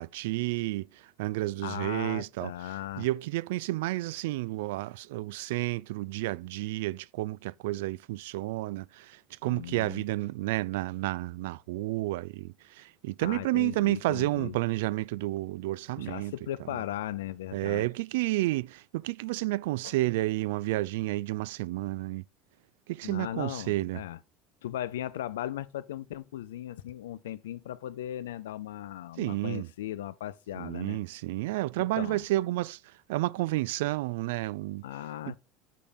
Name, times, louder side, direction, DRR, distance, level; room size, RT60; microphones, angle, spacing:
voice 1, 0.0-16.3 17.5-22.3 22.9-24.0 29.2-29.7 30.5-34.8 35.3-35.4, right 18 dB, 75° right, 0.4 m, -31 dB
voice 2, 1.6-3.1 9.5-10.0 13.2-14.5 16.0-17.9 19.8-19.9 23.0-24.2 24.6-31.0 31.8-32.2 34.8-35.4, left 12 dB, 85° left, 0.6 m, -37 dB
8.4 x 5.1 x 4.3 m
hypercardioid pair, 80°, 0 cm